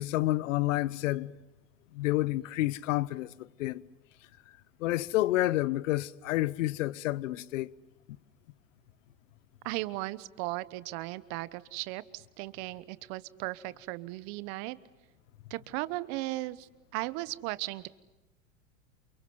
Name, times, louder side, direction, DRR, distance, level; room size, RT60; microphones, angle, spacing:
voice 1, 0.0-1.3 1.9-3.8 4.8-7.7, left 16 dB, 70° left, 1.0 m, -29 dB
voice 2, 9.6-14.8 15.5-17.9, right 19 dB, 50° right, 1.2 m, -36 dB
29.0 x 23.5 x 7.9 m
hypercardioid pair, 115°, 39 cm